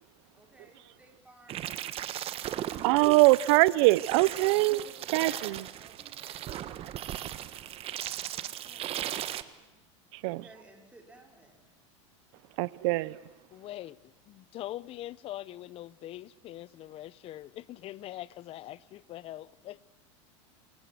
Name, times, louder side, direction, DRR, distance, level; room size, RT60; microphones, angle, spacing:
voice 1, 0.3-1.7 2.6-3.1 4.3-6.5 8.3-9.7 10.2-11.7, right 2 dB, 10° right, 5.3 m, -55 dB
sound 1, 1.5-9.4, right 12 dB, 35° right, 1.3 m, -37 dB
voice 2, 2.8-4.8 5.1-5.6 10.1-10.4 12.6-13.2, right 21 dB, 65° right, 0.8 m, -23 dB
voice 3, 13.5-19.8, left 14 dB, 35° left, 0.8 m, -43 dB
27.5 x 24.5 x 7.8 m
supercardioid pair, 125°, 16 cm